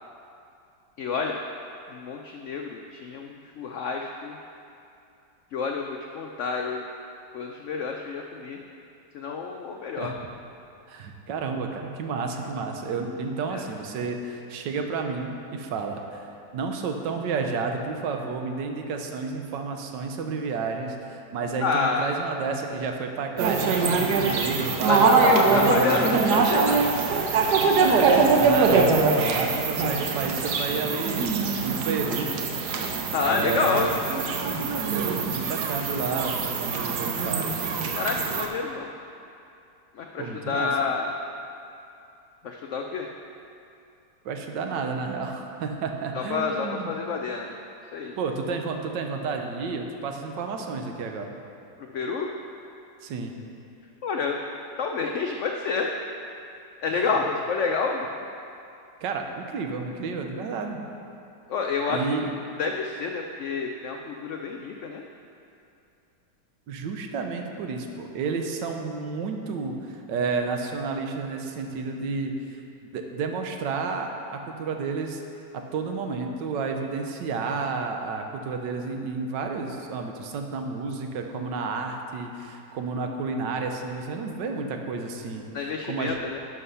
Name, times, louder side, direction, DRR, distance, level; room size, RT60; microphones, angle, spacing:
voice 1, 1.0-1.4 1.9-4.4 5.5-6.8 7.3-8.6 9.1-10.1 13.5-13.6 21.6-22.1 24.9-27.1 33.1-33.9 37.9-38.9 39.9-41.1 42.4-43.1 46.1-47.5 47.8-48.2 51.9-52.3 54.0-54.4 54.8-55.9 56.8-58.1 61.5-62.1 62.6-65.0 85.5-86.4, left 4 dB, 85° left, 2 dB, 0.6 m, -28 dB
voice 2, 10.9-26.2 27.8-32.7 33.3-33.9 34.9-37.6 40.2-40.7 44.2-46.9 48.2-51.3 53.0-53.3 56.9-57.0 59.0-60.8 61.9-62.3 66.7-72.4 72.9-75.2 75.5-85.4 85.9-86.2, right 4 dB, 85° right, 4 dB, 1.5 m, -31 dB
sound 1, 23.4-38.5, right 4 dB, 70° right, 1.3 m, -23 dB
11.0 x 5.3 x 5.5 m, 2.7 s
omnidirectional pair, 1.9 m